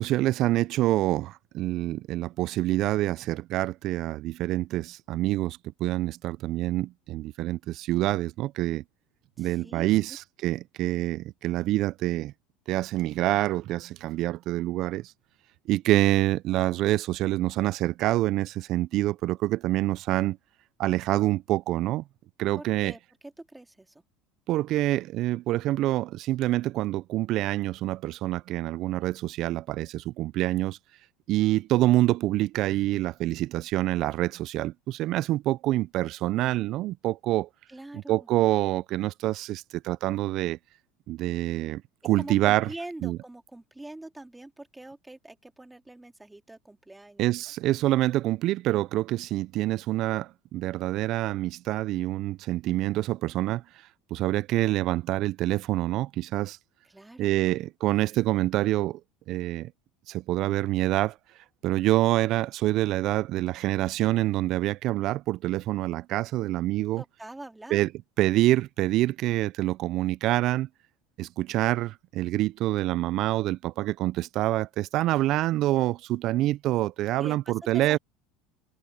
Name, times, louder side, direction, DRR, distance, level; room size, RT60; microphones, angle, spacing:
voice 1, 0.0-8.8 9.4-12.3 12.7-15.1 15.7-20.4 20.8-22.0 22.4-22.9 24.5-30.8 31.3-37.5 38.1-40.6 41.1-42.7 43.0-43.2 47.2-53.6 54.1-56.6 57.2-59.0 59.3-59.7 60.1-61.2 61.6-67.0 67.7-67.9 68.2-70.7 71.2-78.0, right 16 dB, 55° right, 0.3 m, -26 dB
voice 2, 9.4-9.9 22.5-24.0 37.7-38.3 42.2-47.3 56.8-57.7 67.0-67.8 77.2-78.0, right 2 dB, 10° right, 2.4 m, -44 dB
supercardioid pair, 95°, 0 cm